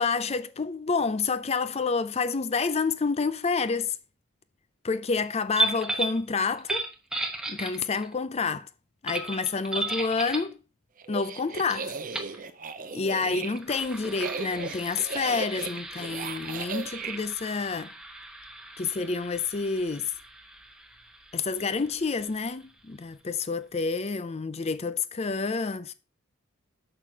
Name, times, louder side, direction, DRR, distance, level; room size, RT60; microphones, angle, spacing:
voice 1, 0.0-4.0 4.8-6.9 7.5-8.7 9.0-10.6 11.1-11.9 12.9-17.9 18.8-20.1 21.3-25.9, left 4 dB, 30° left, 0.4 m, -28 dB
sound 1, 5.5-6.2 6.6-8.1 9.1-10.5 11.7-11.8 12.1-12.4 13.4-22.7, right 2 dB, 5° right, 1.0 m, -35 dB
sound 2, 11.0-17.2, right 4 dB, 40° right, 0.6 m, -37 dB
6.6 x 5.7 x 4.5 m
head